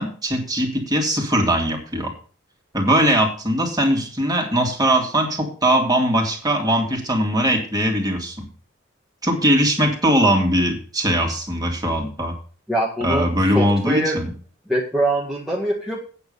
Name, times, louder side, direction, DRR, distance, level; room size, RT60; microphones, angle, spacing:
voice 1, 0.0-2.1 2.7-8.5 9.2-12.3 13.0-14.3, right 1 dB, 20° right, 2 dB, 2.3 m, -20 dB
voice 2, 12.7-13.3 13.6-14.2 14.7-16.0, right 1 dB, ahead, -4 dB, 1.7 m, -23 dB
8.9 x 7.1 x 6.8 m, 0.40 s
head